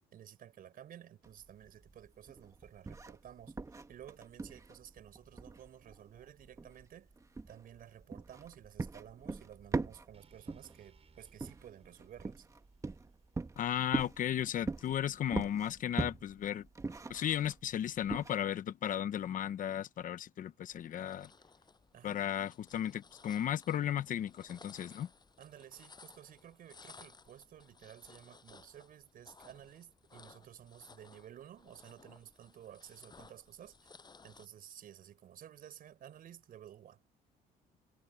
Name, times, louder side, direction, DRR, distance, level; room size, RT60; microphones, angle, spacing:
voice 1, 0.1-7.1 7.5-12.5 21.9-22.2 25.4-33.9 34.2-37.0, right 10 dB, 60° right, 5.4 m, -54 dB
sound 1, 1.2-18.3, right 3 dB, 20° right, 1.6 m, -42 dB
sound 2, 10.1-14.3, right 6 dB, 35° right, 7.8 m, -69 dB
voice 2, 13.6-16.7 17.1-21.3 22.0-25.1, left 10 dB, 50° left, 1.0 m, -35 dB
sound 3, 20.7-34.5, left 4 dB, 25° left, 7.2 m, -59 dB
cardioid pair, 110°, 17 cm